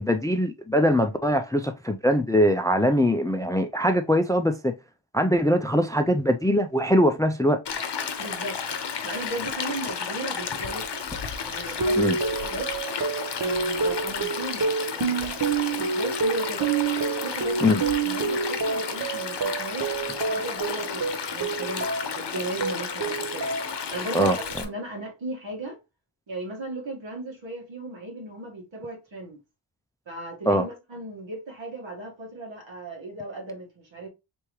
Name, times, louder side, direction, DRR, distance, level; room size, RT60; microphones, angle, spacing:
voice 1, 0.0-4.7 5.1-7.6 12.0-12.2 17.6-17.8 24.1-24.4 30.5-30.6, equal, 10° left, 0.4 m, -22 dB
Stream, 7.7-24.7, left 6 dB, 60° left, 0.8 m, -33 dB
voice 2, 8.2-8.6 9.0-10.9 11.5-12.7 13.4-16.7 17.2-23.5 23.9-25.8 26.3-29.4 30.1-34.1, right 2 dB, 70° right, 1.6 m, -36 dB
sound 1, 11.8-22.2 22.6-23.8 24.2-24.7, right 4 dB, 45° right, 0.8 m, -28 dB
3.5 x 3.0 x 3.0 m
cardioid pair, 45°, 47 cm